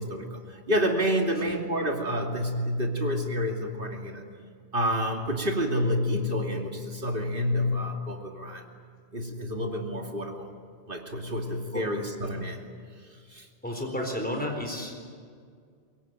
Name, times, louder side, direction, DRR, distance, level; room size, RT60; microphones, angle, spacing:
voice 1, 0.0-4.2 4.7-8.7 9.1-10.5 10.9-12.7 13.3-13.5, equal, 50° right, 2 dB, 2.9 m, -29 dB
voice 2, 13.6-15.0, left 1 dB, 10° left, 2 dB, 4.0 m, -32 dB
24.0 x 22.0 x 9.0 m, 2.1 s
omnidirectional pair, 1.1 m